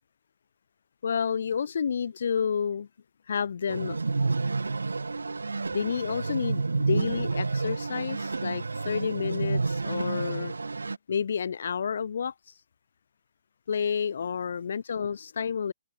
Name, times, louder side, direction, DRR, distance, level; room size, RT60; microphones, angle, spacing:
voice 1, 1.0-2.9 3.3-4.0 5.7-10.5 11.1-12.5 13.7-15.7, left 7 dB, 65° left, 0.7 m, -30 dB
sound 1, 3.7-11.0, right 3 dB, 85° right, 0.4 m, -29 dB
open air
hypercardioid pair, 140°, 0 cm